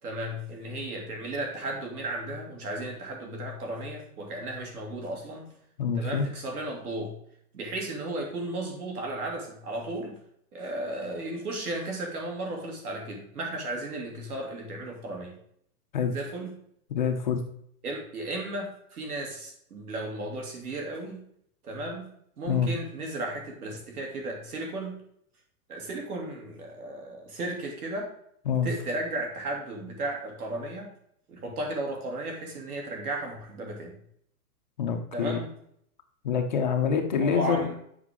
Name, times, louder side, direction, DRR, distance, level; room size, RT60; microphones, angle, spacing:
voice 1, 0.0-5.5 5.9-7.1 7.5-10.1 10.5-15.3 16.1-16.5 17.8-21.2 21.6-22.1 22.4-25.0 25.7-28.1 28.6-30.9 31.3-33.9 35.1-35.5 37.2-37.7, right 1 dB, 75° right, 0 dB, 2.9 m, -34 dB
voice 2, 5.8-6.2 15.9-16.1 16.9-17.4 22.5-22.7 28.5-28.7 34.8-35.4 36.2-37.7, left 7 dB, 30° left, 3 dB, 0.6 m, -26 dB
7.9 x 5.2 x 3.6 m, 0.69 s
hypercardioid pair, 175°, 45 cm